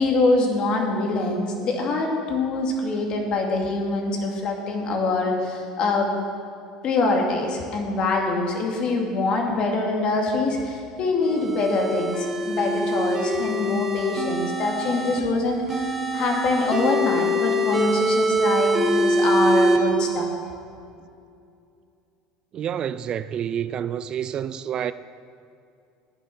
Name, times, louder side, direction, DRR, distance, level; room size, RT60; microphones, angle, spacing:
voice 1, 0.0-6.1 6.8-20.4, left 3 dB, 50° left, 2.5 m, -24 dB
sound 1, 11.3-15.2 15.7-19.8, right 1 dB, 15° right, 2.2 m, -24 dB
voice 2, 22.5-24.9, right 9 dB, 40° right, 0.4 m, -28 dB
11.5 x 9.3 x 6.1 m
supercardioid pair, 100°, 2 cm